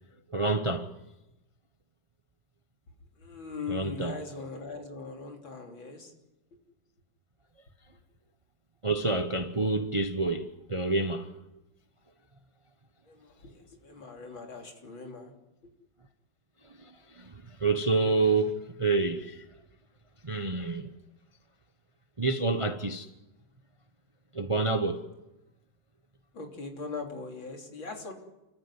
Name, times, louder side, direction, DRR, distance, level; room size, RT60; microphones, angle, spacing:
voice 1, 0.3-0.9 3.7-4.2 8.8-11.3 16.6-19.4 20.2-20.9 22.2-23.1 24.3-25.0, right 3 dB, 25° right, 0.7 m, -28 dB
voice 2, 3.2-6.1 13.1-15.3 15.6-15.7 26.3-28.1, left 4 dB, 80° left, 4.1 m, -40 dB
29.5 x 14.0 x 9.7 m
omnidirectional pair, 2.1 m